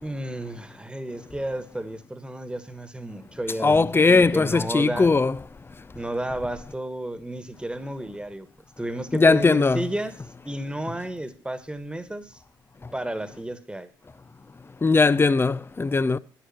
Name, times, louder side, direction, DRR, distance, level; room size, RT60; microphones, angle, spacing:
voice 1, 0.0-5.2 5.9-8.5 8.8-10.1 10.5-12.4 12.9-13.9, right 1 dB, 10° right, 1.7 m, -32 dB
voice 2, 3.6-5.4 9.1-9.8 14.8-16.2, left 3 dB, 20° left, 0.7 m, -19 dB
10.5 x 10.5 x 5.9 m
hypercardioid pair, 50°, 11 cm